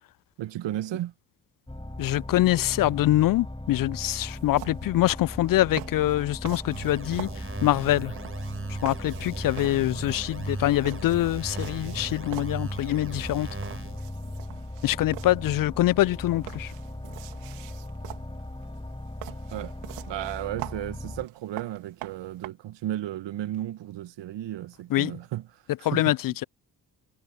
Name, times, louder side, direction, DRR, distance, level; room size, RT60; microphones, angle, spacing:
voice 1, 0.4-1.1 19.5-19.7 20.1-26.1, right 13 dB, 70° right, 1.7 m, -34 dB
sound 1, 1.7-21.3, left 1 dB, 10° left, 5.5 m, -38 dB
voice 2, 2.0-7.3 7.6-8.1 8.8-13.5 14.8-16.7 24.9-25.1 25.8-26.4, left 15 dB, 50° left, 0.4 m, -24 dB
sound 2, 4.3-22.5, right 23 dB, 90° right, 3.1 m, -45 dB
sound 3, 6.6-14.0, right 3 dB, 30° right, 7.1 m, -37 dB
hypercardioid pair, 45°, 45 cm